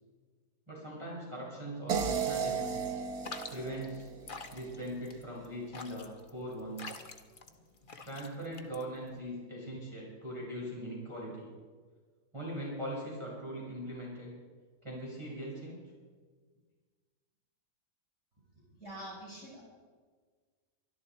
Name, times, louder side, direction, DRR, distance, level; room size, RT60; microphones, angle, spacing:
voice 1, 0.7-2.8 3.5-4.1 4.5-6.9 8.0-11.5 12.3-14.3 14.8-15.8, equal, 15° right, -5 dB, 4.7 m, -40 dB
sound 1, 1.9-5.0, right 7 dB, 60° right, 1.6 m, -35 dB
sound 2, 3.2-9.2, left 4 dB, 35° left, 1.0 m, -47 dB
voice 2, 18.8-19.6, right 1 dB, 40° right, -6 dB, 5.7 m, -45 dB
24.0 x 12.0 x 4.3 m, 1.5 s
omnidirectional pair, 1.9 m